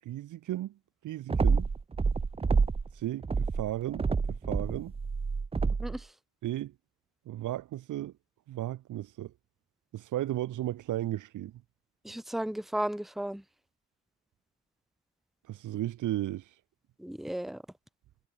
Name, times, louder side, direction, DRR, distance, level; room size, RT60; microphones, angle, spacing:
voice 1, 0.0-1.7 2.9-4.9 6.4-6.7 7.3-8.1 8.5-9.3 9.9-11.5 15.4-16.6, right 14 dB, 80° right, 5.2 m, -35 dB
sound 1, 1.3-2.9 3.2-6.0, right 4 dB, 20° right, 0.6 m, -28 dB
voice 2, 5.8-6.1 12.0-13.4 17.0-17.6, right 1 dB, ahead, 1.4 m, -34 dB
cardioid pair, 90°, 30 cm